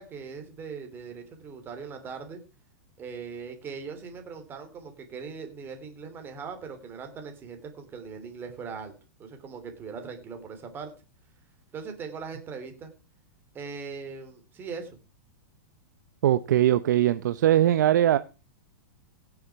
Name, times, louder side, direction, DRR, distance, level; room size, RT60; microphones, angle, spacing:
voice 1, 0.0-2.4 3.0-10.9 11.7-12.9 13.5-15.0, right 5 dB, 20° right, 3.0 m, -40 dB
voice 2, 16.2-18.2, right 12 dB, 75° right, 0.7 m, -21 dB
16.5 x 7.1 x 4.7 m
supercardioid pair, 150°, 10 cm